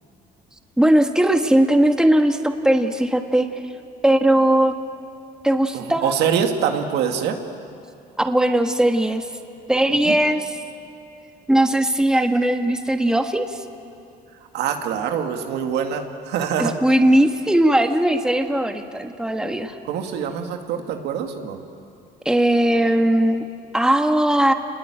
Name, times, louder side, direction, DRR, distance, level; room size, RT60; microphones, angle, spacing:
voice 1, 0.8-3.5 4.0-4.7 5.4-6.1 8.2-9.3 9.7-10.5 11.5-13.6 16.6-19.8 22.2-23.5 23.7-24.5, right 1 dB, 5° right, 6 dB, 1.5 m, -18 dB
voice 2, 5.7-7.4 9.9-10.2 14.5-16.7 19.8-21.6, right 8 dB, 80° right, 5 dB, 2.3 m, -24 dB
29.0 x 20.5 x 9.2 m, 2.6 s
cardioid pair, 110°, 17 cm